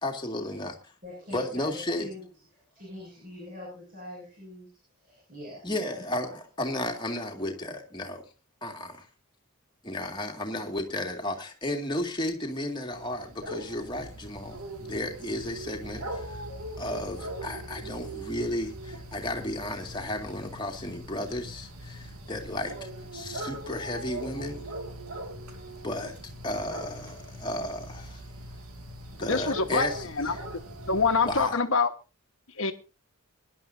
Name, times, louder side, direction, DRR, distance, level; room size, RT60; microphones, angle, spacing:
voice 1, 0.0-0.8 1.3-2.1 5.6-8.2 8.6-9.1 9.8-16.4 16.8-24.7 25.8-26.1 26.4-28.2 29.1-30.4 31.2-31.6, left 1 dB, 20° left, 1 dB, 2.1 m, -33 dB
voice 2, 1.0-2.3 2.7-6.3, left 1 dB, 40° right, -2 dB, 7.5 m, -44 dB
sound 1, 12.9-31.5, right 1 dB, 75° right, 2.2 m, -41 dB
voice 3, 29.3-29.9 30.2-30.6 30.9-31.9 32.6-32.7, left 4 dB, 65° left, 8 dB, 1.3 m, -25 dB
24.0 x 11.0 x 2.7 m, 0.31 s
head